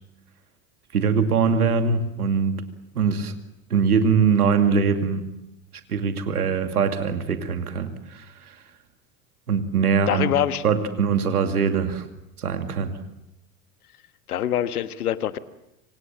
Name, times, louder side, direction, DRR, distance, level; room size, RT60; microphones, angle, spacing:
voice 1, 0.9-2.6 2.9-3.3 3.7-5.3 5.9-8.5 9.5-10.3 10.6-12.0 12.4-12.9, right 6 dB, 90° right, 7 dB, 2.6 m, -22 dB
voice 2, 10.1-10.6 14.3-15.4, left 11 dB, 85° left, 12 dB, 1.5 m, -24 dB
26.5 x 25.5 x 7.5 m, 0.88 s
hypercardioid pair, 80°, 43 cm